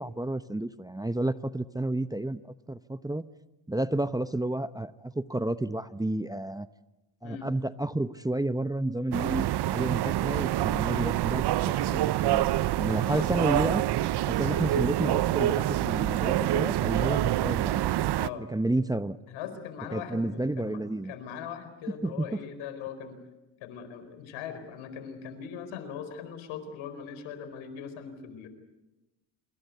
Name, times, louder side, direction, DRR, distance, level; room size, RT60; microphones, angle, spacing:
voice 1, 0.0-2.4 2.7-3.3 3.7-6.7 7.2-11.5 11.9-12.5 12.8-13.8 14.3-17.8 18.5-19.2 19.9-21.1 22.0-22.4, right 1 dB, 10° right, 12 dB, 0.8 m, -31 dB
sound 1, 9.1-18.3, right 14 dB, 55° right, 0.8 m, -26 dB
voice 2, 12.9-13.3 14.4-14.6 18.2-18.5 19.3-23.2 23.6-28.5, left 7 dB, 85° left, 10 dB, 4.6 m, -40 dB
27.0 x 22.5 x 8.3 m, 1.0 s
supercardioid pair, 80°, 46 cm